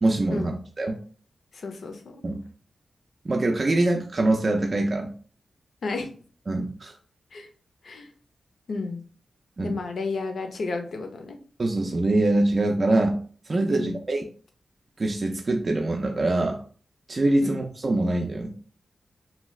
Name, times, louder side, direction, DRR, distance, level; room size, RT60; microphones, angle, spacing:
voice 1, 0.0-1.0 2.2-2.4 3.2-5.1 6.5-6.9 9.6-9.8 11.6-13.2 13.5-14.2 15.0-16.6 17.1-18.5, right 2 dB, 35° right, 1 dB, 0.4 m, -24 dB
voice 2, 1.5-2.2 5.8-6.1 7.3-7.5 7.8-8.1 8.7-9.0 9.6-11.4 13.7-14.0 17.4-17.6, left 3 dB, 65° left, 5 dB, 0.5 m, -32 dB
2.7 x 2.3 x 3.1 m, 0.43 s
wide cardioid pair, 105°, 0 cm